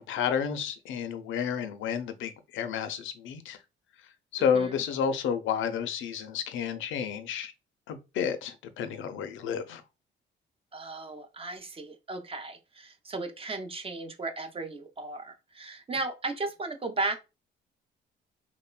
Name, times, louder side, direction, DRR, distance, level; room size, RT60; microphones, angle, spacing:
voice 1, 0.0-3.6 4.3-7.5 7.9-9.8, left 7 dB, 80° left, 0.4 m, -31 dB
voice 2, 4.4-4.8 10.7-17.2, right 3 dB, 30° right, 0.5 m, -35 dB
3.0 x 2.1 x 2.2 m
cardioid pair, 90°, 20 cm